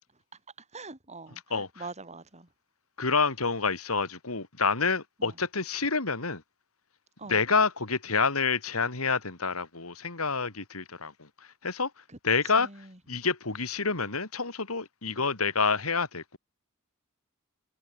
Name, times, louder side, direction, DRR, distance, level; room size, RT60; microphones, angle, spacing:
voice 1, 0.7-2.5 5.2-5.4 7.2-7.4 12.1-12.2 12.6-13.0 15.1-15.3, right 3 dB, 30° right, 4.7 m, -44 dB
voice 2, 3.0-6.4 7.3-11.3 11.6-11.9 12.2-12.7 13.1-16.4, left 4 dB, 85° left, 3.1 m, -28 dB
head